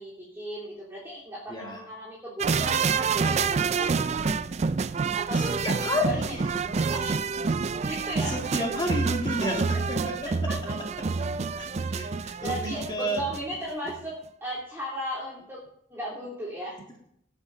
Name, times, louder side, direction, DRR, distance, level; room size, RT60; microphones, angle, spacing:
voice 1, 0.0-4.3 5.1-6.3 6.9-7.1 7.8-8.3 10.5-10.8 12.4-14.1 14.4-15.6 15.9-16.8, equal, 15° right, -7 dB, 2.8 m, -36 dB
voice 2, 1.5-1.8 5.3-6.6 7.8-8.0 8.2-10.5 11.2-13.3, left 1 dB, 25° left, 0 dB, 2.1 m, -32 dB
sound 1, 2.4-13.6 13.9-14.0, right 5 dB, 40° right, 0.4 m, -28 dB
18.5 x 7.3 x 3.9 m, 0.70 s
head